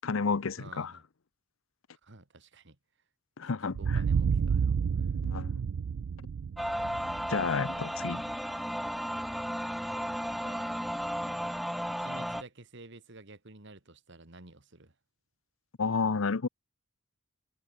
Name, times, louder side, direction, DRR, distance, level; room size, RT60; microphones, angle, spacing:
voice 1, 0.0-0.9 3.4-4.0 5.2-5.5 7.3-8.2 15.8-16.5, left 4 dB, 70° left, 0.7 m, -30 dB
voice 2, 0.6-1.0 2.0-2.8 3.6-5.1 7.2-7.9 9.9-10.8 11.9-15.0, right 2 dB, 60° right, 2.1 m, -52 dB
sound 1, 3.7-8.3, right 6 dB, 85° right, 0.4 m, -30 dB
sound 2, 6.6-12.4, equal, ahead, 0.7 m, -34 dB
head